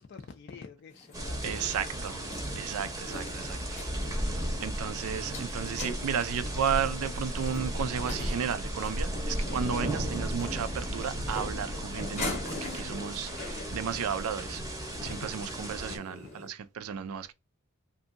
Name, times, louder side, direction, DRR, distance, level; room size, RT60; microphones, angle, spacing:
voice 1, 0.0-1.6 9.3-9.9 15.0-15.6 15.9-16.3, left 5 dB, 50° left, 0.3 m, -47 dB
sound 1, 0.9-16.5, left 3 dB, 30° left, 0.7 m, -44 dB
sound 2, 1.1-16.0, right 1 dB, 15° right, 0.6 m, -35 dB
voice 2, 1.4-2.3 2.6-3.6 3.9-14.6 15.0-17.3, right 7 dB, 75° right, 0.4 m, -34 dB
sound 3, 10.3-12.4, left 1 dB, 90° left, 0.6 m, -44 dB
2.8 x 2.6 x 2.4 m
head